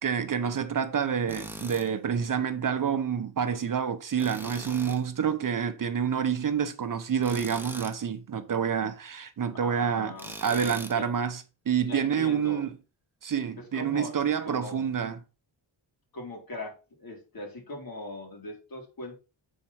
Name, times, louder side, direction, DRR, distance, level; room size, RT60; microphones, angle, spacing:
voice 1, 0.0-12.8 13.2-15.2, right 7 dB, 45° right, 0.8 m, -28 dB
Tools, 1.3-1.9 4.2-5.0 7.2-8.0 10.2-11.0, right 1 dB, 5° right, 1.0 m, -41 dB
voice 2, 9.5-11.1 11.8-12.6 13.6-14.1 14.4-14.9 16.1-19.2, left 2 dB, 50° left, 3.7 m, -40 dB
7.4 x 4.4 x 5.7 m
wide cardioid pair, 115°, 46 cm